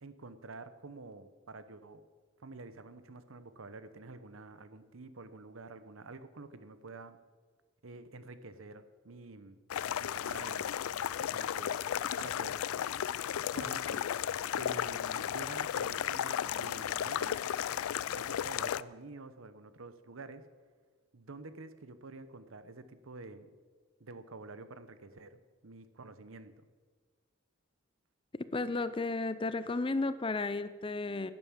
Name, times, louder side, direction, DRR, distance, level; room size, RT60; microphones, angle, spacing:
voice 1, 0.0-2.0 2.4-7.2 7.8-9.6 10.0-10.8 11.2-11.8 12.2-12.6 13.5-14.1 14.5-17.5 18.1-20.4 21.1-23.5 24.0-26.7, right 3 dB, 70° right, 12 dB, 0.9 m, -49 dB
sound 1, 9.7-18.8, left 9 dB, 85° left, 0.4 m, -34 dB
voice 2, 28.5-31.3, left 3 dB, 25° left, 14 dB, 0.5 m, -33 dB
11.0 x 10.5 x 7.3 m, 1.5 s
head